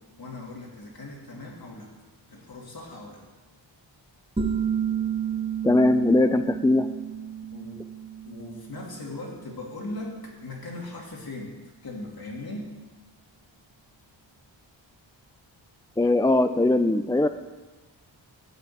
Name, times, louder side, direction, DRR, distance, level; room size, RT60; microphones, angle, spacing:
voice 1, 0.2-1.9 2.3-3.2 7.5-7.8 8.2-11.5 11.8-12.7, left 2 dB, 50° left, -1 dB, 2.8 m, -39 dB
sound 1, 4.4-9.8, right 8 dB, 15° right, 0.8 m, -31 dB
voice 2, 5.6-6.9 16.0-17.3, left 2 dB, 10° left, 10 dB, 0.3 m, -20 dB
13.5 x 5.8 x 8.7 m, 1.2 s
wide cardioid pair, 125°, 46 cm